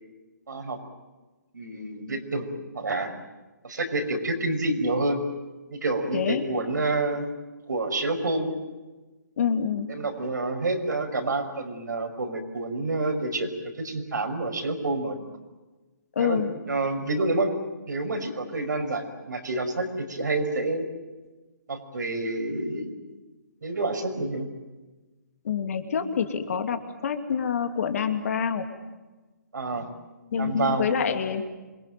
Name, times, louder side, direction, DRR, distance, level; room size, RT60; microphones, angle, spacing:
voice 1, 0.5-0.8 1.5-3.1 3.6-5.2 5.7-7.3 7.7-8.6 9.9-13.5 13.8-15.2 16.2-17.5 17.9-20.9 21.7-22.9 23.6-24.5 29.5-29.9 30.4-30.9, right 2 dB, 75° right, 4 dB, 5.9 m, -28 dB
voice 2, 6.1-6.4 9.4-9.9 16.2-16.5 25.4-28.6 30.3-31.4, left 7 dB, 50° left, 7 dB, 2.7 m, -26 dB
27.0 x 23.0 x 9.3 m, 1.2 s
hypercardioid pair, 150°, 10 cm